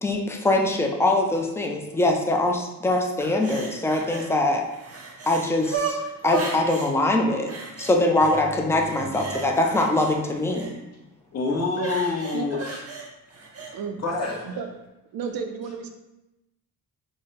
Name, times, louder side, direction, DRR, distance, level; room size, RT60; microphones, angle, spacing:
voice 1, 0.0-4.6 5.3-6.0 6.2-7.5 7.8-10.7, left 2 dB, 10° left, 2 dB, 0.3 m, -23 dB
sound 1, 3.2-4.3 4.6-6.9 7.5-8.4 8.7-10.7 11.7-13.7 14.2-14.4, right 4 dB, 45° right, 0.6 m, -34 dB
voice 2, 8.4-9.2 11.3-12.8 14.0-14.6, left 3 dB, 50° left, -1 dB, 0.8 m, -28 dB
voice 3, 15.1-15.9, right 6 dB, 85° right, 6 dB, 0.5 m, -32 dB
3.8 x 2.0 x 3.9 m, 0.96 s
wide cardioid pair, 130°, 34 cm